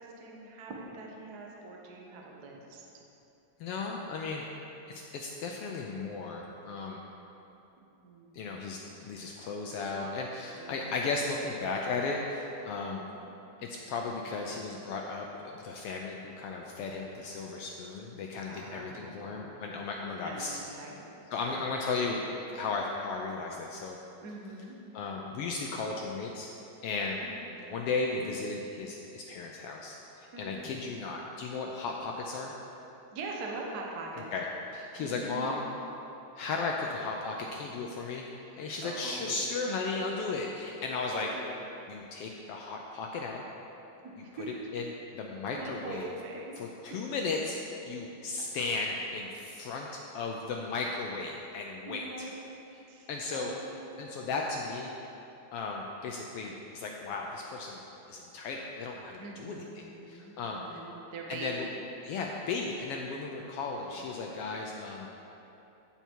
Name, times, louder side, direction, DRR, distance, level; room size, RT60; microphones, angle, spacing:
voice 1, 0.0-2.8 8.0-8.8 10.5-11.0 12.8-13.2 18.5-19.6 20.0-21.2 24.2-24.8 27.2-27.9 30.3-31.0 33.1-34.3 35.0-35.5 38.8-39.5 41.1-41.6 44.0-44.5 45.5-46.6 51.8-52.6 52.9-54.0 59.2-61.8, right 2 dB, 55° right, -1 dB, 1.1 m, -43 dB
voice 2, 3.6-4.5 4.9-7.0 8.3-13.0 13.6-15.3 15.5-20.6 21.3-22.2 22.5-24.0 24.9-26.5 26.8-27.2 27.7-32.5 34.3-34.4 34.7-35.6 36.4-41.3 41.9-43.4 44.7-44.8 45.2-46.1 46.6-52.0 53.1-53.5 54.0-54.9 55.5-57.8 58.1-60.8 61.3-61.7 62.0-65.1, left 4 dB, 80° left, 0 dB, 1.3 m, -35 dB
14.5 x 5.6 x 4.6 m, 2.9 s
omnidirectional pair, 3.3 m